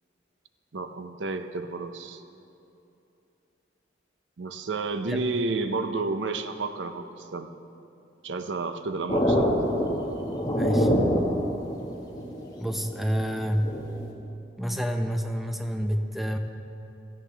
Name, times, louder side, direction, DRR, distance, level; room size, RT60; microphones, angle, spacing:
voice 1, 0.7-2.2 4.4-7.5 8.2-9.5 12.1-12.4, right 3 dB, 85° right, 8 dB, 0.7 m, -31 dB
sound 1, 9.1-14.1, equal, 20° left, 1.6 m, -26 dB
voice 2, 10.6-10.9 12.6-13.8 14.6-16.4, equal, ahead, 4 dB, 0.6 m, -28 dB
17.0 x 15.0 x 3.4 m, 2.8 s
head